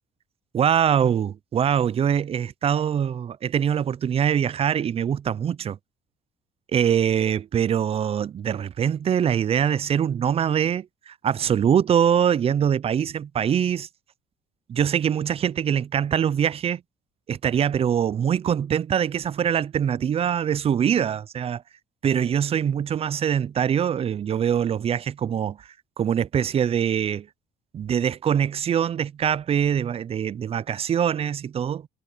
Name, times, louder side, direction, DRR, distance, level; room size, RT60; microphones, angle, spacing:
voice 1, 0.5-5.8 6.7-13.9 14.7-16.8 17.3-21.6 22.0-25.6 26.0-27.3 27.7-31.9, right 8 dB, 35° right, 0.5 m, -23 dB
cardioid pair, 110°, 17 cm